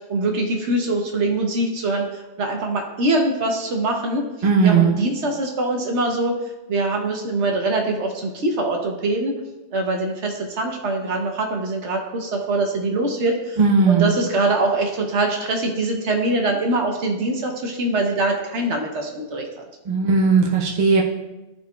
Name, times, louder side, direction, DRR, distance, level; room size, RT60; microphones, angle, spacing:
voice 1, 0.1-4.2 4.6-6.3 6.7-9.3 9.7-13.6 13.9-19.6, right 2 dB, 75° right, 3 dB, 1.2 m, -23 dB
voice 2, 4.4-4.9 13.6-14.1 19.9-21.0, right 5 dB, 40° right, -1 dB, 0.9 m, -17 dB
13.0 x 4.5 x 2.3 m, 1.0 s
omnidirectional pair, 1.2 m